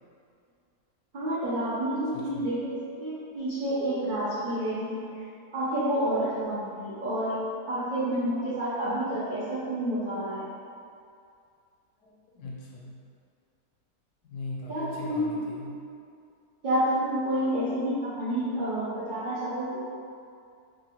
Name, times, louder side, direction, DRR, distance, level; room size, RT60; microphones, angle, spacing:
voice 1, 1.1-5.3 5.5-7.4 7.7-10.5 14.7-15.3 16.6-19.8, right 1 dB, 75° right, -11 dB, 0.4 m, -29 dB
voice 2, 2.1-2.5 12.0-13.1 14.2-15.8, left 2 dB, 80° left, -3 dB, 1.1 m, -40 dB
2.8 x 2.5 x 2.8 m, 2.4 s
omnidirectional pair, 1.7 m